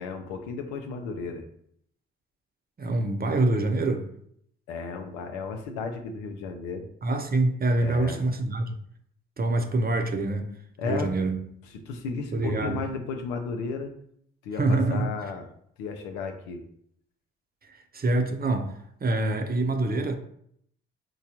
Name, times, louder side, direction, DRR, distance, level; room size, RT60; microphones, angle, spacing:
voice 1, 0.0-1.4 4.7-6.9 7.8-8.2 10.8-11.1 11.9-13.9 14.4-15.5 15.8-16.6, left 4 dB, 90° left, 0.5 m, -34 dB
voice 2, 2.8-4.1 7.0-8.7 9.4-10.5 10.8-11.4 12.3-12.8 14.5-15.1 17.9-18.7 19.0-20.2, right 2 dB, 30° right, 0.7 m, -25 dB
4.7 x 2.2 x 2.8 m
hypercardioid pair, 50°, 29 cm